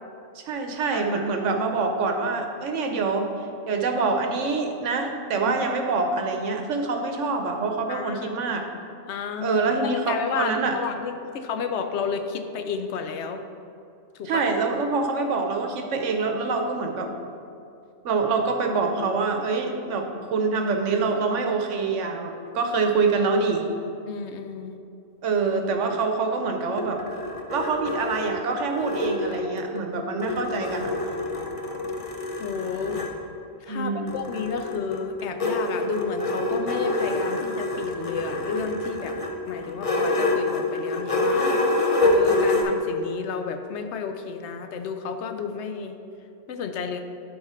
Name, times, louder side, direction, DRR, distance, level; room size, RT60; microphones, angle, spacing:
voice 1, 0.4-3.3 3.7-8.7 9.4-10.8 14.2-17.1 18.0-23.7 25.2-27.0 27.5-30.9 33.7-34.2, right 4 dB, 70° right, 4 dB, 1.1 m, -25 dB
voice 2, 0.9-1.2 5.4-5.5 7.9-8.3 9.1-13.4 14.1-14.5 24.1-24.8 32.4-33.0 33.6-39.1 39.5-41.5 42.0-45.9 46.5-47.0, left 6 dB, 65° left, 7 dB, 0.9 m, -31 dB
sound 1, 26.5-29.8 30.2-33.2 34.1-42.6, left 2 dB, 35° left, 0.6 m, -26 dB
11.5 x 3.9 x 4.3 m, 2.6 s
omnidirectional pair, 1.3 m